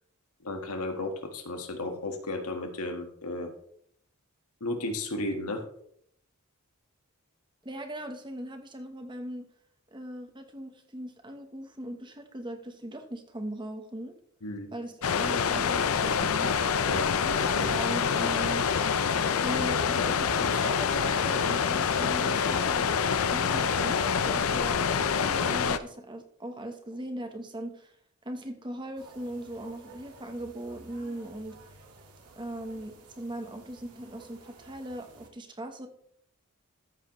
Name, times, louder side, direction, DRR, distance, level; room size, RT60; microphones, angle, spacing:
voice 1, 0.4-3.5 4.6-5.7 14.4-14.7 16.8-17.7, left 2 dB, 85° left, 5 dB, 1.7 m, -34 dB
voice 2, 7.6-9.4 9.9-14.2 14.7-16.5 17.2-18.6 19.4-22.9 23.3-27.9 28.2-31.6 32.4-35.9, right 1 dB, 20° right, 5 dB, 1.1 m, -39 dB
sound 1, 15.0-25.8, left 6 dB, 70° left, 0.5 m, -26 dB
sound 2, 29.0-35.3, right 3 dB, 85° right, 1.9 m, -53 dB
14.0 x 7.4 x 3.2 m, 0.67 s
head